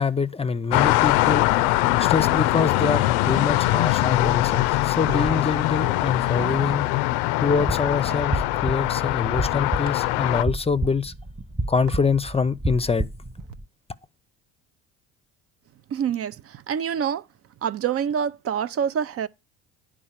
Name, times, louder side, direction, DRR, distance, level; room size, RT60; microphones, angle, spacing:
voice 1, 0.0-1.5 2.0-6.9 7.4-11.1 11.7-13.1, left 5 dB, 20° left, 0.6 m, -25 dB
sound 1, 0.7-10.4, left 17 dB, 85° left, 0.5 m, -22 dB
sound 2, 5.0-6.7 8.1-8.2 9.9-10.0 11.9-12.0 13.4-13.5, right 6 dB, 70° right, 1.0 m, -37 dB
sound 3, 7.5-13.6, right 2 dB, 15° right, 0.7 m, -31 dB
voice 2, 15.9-17.2 17.6-19.3, right 8 dB, 45° right, 0.6 m, -26 dB
9.9 x 4.8 x 7.3 m
supercardioid pair, 80°, 32 cm